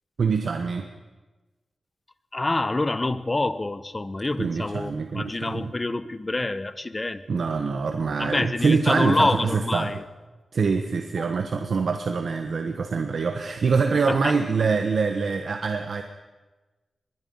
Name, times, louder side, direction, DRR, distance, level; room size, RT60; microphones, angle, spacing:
voice 1, 0.2-0.9 4.4-5.7 7.3-10.0 10.5-16.0, right 5 dB, 75° right, 6 dB, 1.4 m, -25 dB
voice 2, 2.3-7.4 8.2-9.9 11.2-11.3 14.1-14.4, left 2 dB, 35° left, 13 dB, 1.2 m, -27 dB
24.5 x 21.0 x 5.7 m, 1.2 s
cardioid pair, 60°, 0 cm